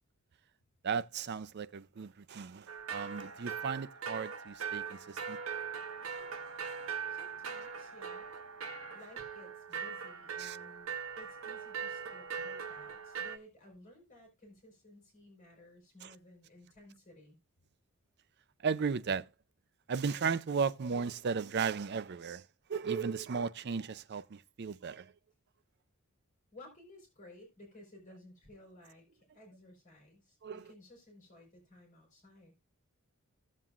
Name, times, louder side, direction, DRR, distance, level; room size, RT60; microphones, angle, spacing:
voice 1, 0.8-5.4 10.4-10.6 16.0-16.1 18.6-19.3 19.9-22.4 22.7-25.1 30.4-30.6, right 5 dB, 50° right, 0.4 m, -35 dB
sound 1, 2.7-13.4, right 6 dB, 70° right, 0.9 m, -41 dB
voice 2, 7.1-8.3 8.9-17.4 26.5-32.5, left 1 dB, 35° left, 4.5 m, -56 dB
16.0 x 7.5 x 2.4 m
head